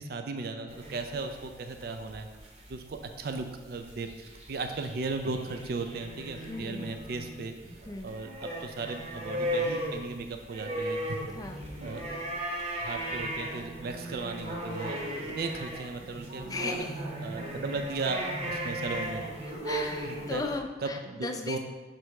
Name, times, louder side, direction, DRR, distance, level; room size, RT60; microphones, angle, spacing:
voice 1, 0.0-2.3 2.7-7.5 8.0-11.3 11.8-12.0 12.8-15.0 15.3-16.5 17.2-19.2 19.8-20.4 20.8-21.6, right 3 dB, 55° right, 6 dB, 0.4 m, -36 dB
sound 1, 0.7-20.5, right 1 dB, 35° right, 0.9 m, -37 dB
voice 2, 6.5-6.9 7.9-8.1 11.3-11.6 16.4-17.0 18.5-18.8 19.6-21.6, left 3 dB, 20° left, 4 dB, 0.4 m, -37 dB
6.1 x 3.3 x 4.6 m, 1.3 s
head